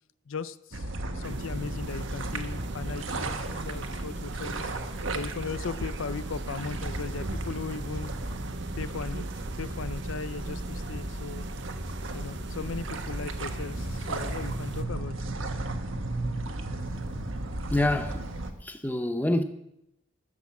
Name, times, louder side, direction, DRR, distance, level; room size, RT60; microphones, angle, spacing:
voice 1, 0.3-4.7 5.1-8.1 8.8-9.3 9.6-11.4 12.1-15.3, left 5 dB, 80° left, 0.5 m, -37 dB
sound 1, 0.7-18.5, right 2 dB, 75° right, 1.3 m, -34 dB
sound 2, 1.2-14.8, right 4 dB, 55° right, 0.8 m, -45 dB
voice 2, 17.7-18.3 18.6-19.4, left 1 dB, 10° left, 0.7 m, -26 dB
14.5 x 7.4 x 7.1 m
head